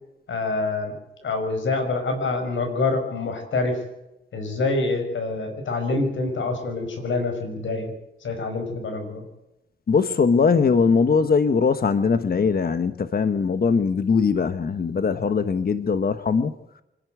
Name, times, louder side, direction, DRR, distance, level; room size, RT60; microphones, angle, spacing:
voice 1, 0.3-1.0 1.2-3.8 4.3-7.9 8.2-9.2, left 3 dB, 85° left, 5 dB, 5.7 m, -26 dB
voice 2, 9.9-16.5, left 5 dB, 50° left, 11 dB, 1.2 m, -21 dB
25.5 x 11.0 x 9.4 m, 0.88 s
cardioid pair, 85°, 19 cm